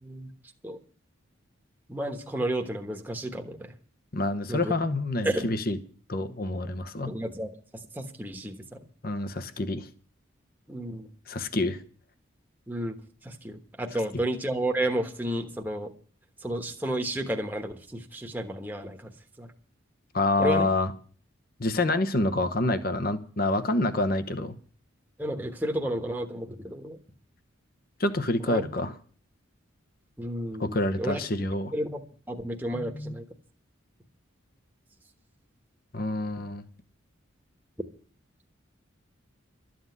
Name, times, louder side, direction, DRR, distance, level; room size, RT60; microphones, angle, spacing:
voice 1, 1.9-3.7 4.5-4.7 5.2-5.5 7.1-8.8 10.7-11.1 12.7-12.9 13.2-15.9 16.4-19.1 19.4-19.5 20.4-20.7 25.2-27.0 28.5-28.6 30.2-31.2 31.7-32.0 32.3-33.2, right 1 dB, 10° right, 2 dB, 1.2 m, -32 dB
voice 2, 4.1-5.8 6.1-7.1 9.0-9.9 11.3-11.8 20.1-20.9 21.6-24.6 28.0-28.9 30.6-31.7 32.7-33.1 35.9-36.6, left 2 dB, 45° left, 11 dB, 1.0 m, -27 dB
13.0 x 7.9 x 9.4 m, 0.43 s
head